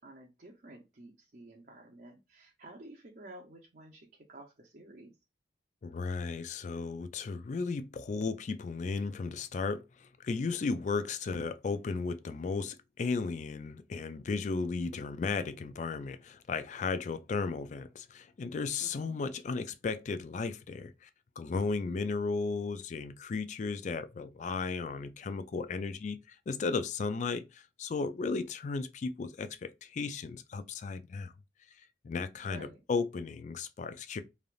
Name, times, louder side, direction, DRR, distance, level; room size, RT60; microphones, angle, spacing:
voice 1, 0.0-5.1 18.8-19.1 32.4-32.8, right 1 dB, 50° right, 0.6 m, -52 dB
voice 2, 5.8-21.1 21.4-31.3 32.0-34.2, left 4 dB, 40° left, 0.3 m, -35 dB
3.2 x 2.5 x 2.4 m
head